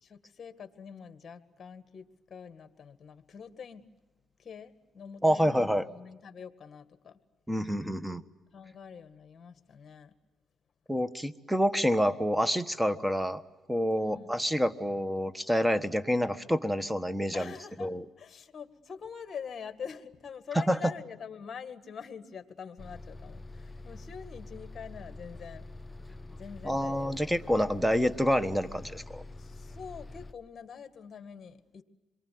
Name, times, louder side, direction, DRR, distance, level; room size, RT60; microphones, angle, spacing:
voice 1, 0.0-3.8 4.4-7.2 8.5-10.1 13.9-14.3 17.3-25.7 26.4-27.2 29.4-31.8, left 6 dB, 45° left, 9 dB, 2.0 m, -45 dB
voice 2, 5.2-5.9 7.5-8.2 10.9-13.4 13.7-17.5 17.8-18.0 20.7-20.8 26.6-29.2, equal, 5° right, 13 dB, 1.3 m, -28 dB
Bus, 22.8-30.3, left 2 dB, 15° left, 0.9 m, -46 dB
27.0 x 23.0 x 9.5 m, 1.1 s
cardioid pair, 90°, 0 cm